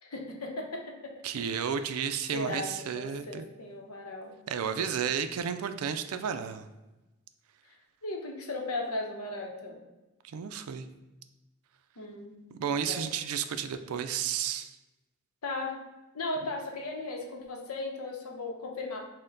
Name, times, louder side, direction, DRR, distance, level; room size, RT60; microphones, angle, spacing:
voice 1, 0.0-1.2 2.3-4.4 4.8-5.0 7.6-9.8 12.0-12.4 12.9-13.1 15.4-15.8 16.1-19.1, left 2 dB, 85° left, 2 dB, 0.8 m, -37 dB
voice 2, 1.2-3.5 4.5-6.7 10.2-10.9 12.6-14.8, right 7 dB, 75° right, 9 dB, 0.4 m, -32 dB
6.3 x 2.2 x 3.8 m, 1.0 s
head